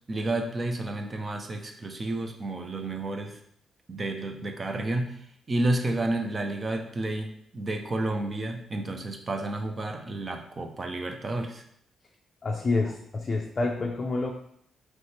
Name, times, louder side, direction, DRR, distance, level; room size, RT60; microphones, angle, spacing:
voice 1, 0.1-3.4 3.9-5.1 5.5-7.3 7.5-11.6, right 2 dB, 30° right, 5 dB, 0.5 m, -30 dB
voice 2, 12.4-14.3, left 3 dB, 35° left, 0 dB, 0.4 m, -28 dB
3.2 x 3.2 x 4.2 m, 0.69 s
cardioid pair, 120°, 0 cm